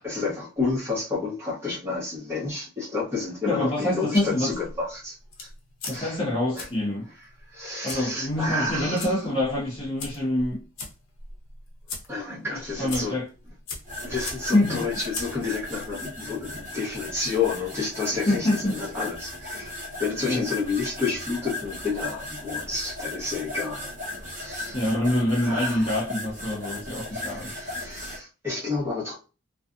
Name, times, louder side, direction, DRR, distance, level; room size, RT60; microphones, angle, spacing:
voice 1, 0.0-5.5 5.9-6.2 6.5-6.7 7.5-9.2 12.1-13.1 14.0-24.8 25.4-25.9 27.1-29.1, left 4 dB, 10° right, 1.0 m, -30 dB
voice 2, 3.5-4.5 5.9-7.1 7.8-10.6 12.3-13.3 14.5-14.9 18.1-18.8 20.3-20.5 24.7-27.5, left 1 dB, 25° left, 0.6 m, -26 dB
sound 1, 4.1-17.7, left 3 dB, 80° left, 0.7 m, -42 dB
sound 2, 13.8-28.2, left 2 dB, 35° right, 1.1 m, -37 dB
2.5 x 2.3 x 2.5 m
head